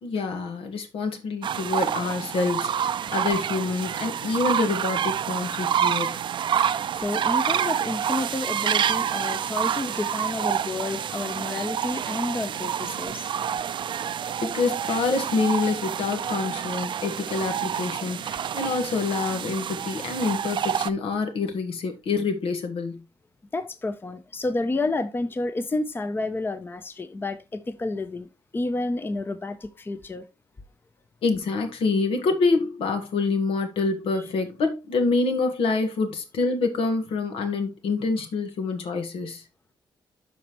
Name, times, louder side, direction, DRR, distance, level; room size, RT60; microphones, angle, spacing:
voice 1, 0.0-6.2 14.4-23.0 31.2-39.4, left 4 dB, 85° left, 1.6 m, -26 dB
sound 1, 1.4-20.9, right 9 dB, 60° right, 0.4 m, -28 dB
voice 2, 6.9-13.3 23.5-28.3 28.5-30.3 34.2-34.3, left 2 dB, 25° left, 0.7 m, -30 dB
12.5 x 4.2 x 3.0 m
cardioid pair, 105°, 9 cm